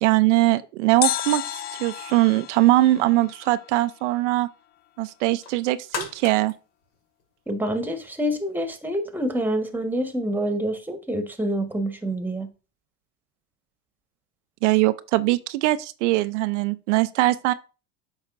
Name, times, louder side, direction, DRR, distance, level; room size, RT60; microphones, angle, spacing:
voice 1, 0.0-4.5 5.0-6.5 14.6-17.5, right 17 dB, 80° right, 0.5 m, -21 dB
sound 1, 1.0-4.1 4.3-4.4, left 11 dB, 30° left, 0.4 m, -32 dB
sound 2, 5.1-7.8 8.3-8.4, left 5 dB, 65° left, 2.2 m, -37 dB
voice 2, 7.5-12.5, equal, 5° right, 1.2 m, -27 dB
8.8 x 5.6 x 2.5 m
supercardioid pair, 100°, 35 cm